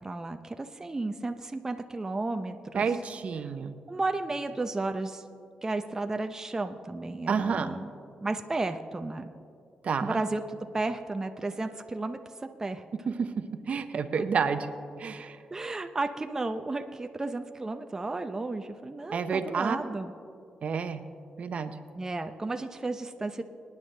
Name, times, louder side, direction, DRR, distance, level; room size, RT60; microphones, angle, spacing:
voice 1, 0.0-2.9 3.4-3.5 3.9-5.2 5.6-7.9 8.2-9.3 10.0-12.8 14.2-14.3 15.5-20.1 22.0-23.4, right 2 dB, 20° right, 6 dB, 0.5 m, -33 dB
voice 2, 2.7-3.7 7.3-7.7 9.8-10.2 13.2-13.3 13.7-14.7 15.0-15.4 19.1-19.8 20.6-21.0 21.4-21.7, right 6 dB, 55° right, 9 dB, 0.7 m, -29 dB
26.0 x 9.7 x 3.3 m, 2.4 s
cardioid pair, 110°, 3 cm